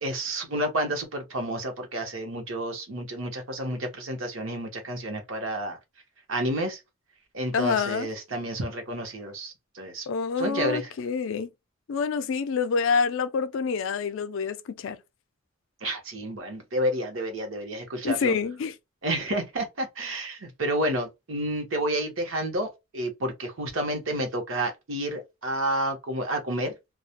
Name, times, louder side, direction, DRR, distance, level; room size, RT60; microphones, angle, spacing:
voice 1, 0.0-5.8 6.3-6.8 7.3-10.1 10.4-10.9 15.8-18.3 19.0-26.7, right 1 dB, 65° right, 0.9 m, -30 dB
voice 2, 7.5-8.1 10.1-11.5 11.9-15.0 18.0-18.8, left 5 dB, 65° left, 0.4 m, -27 dB
2.3 x 2.1 x 2.8 m
head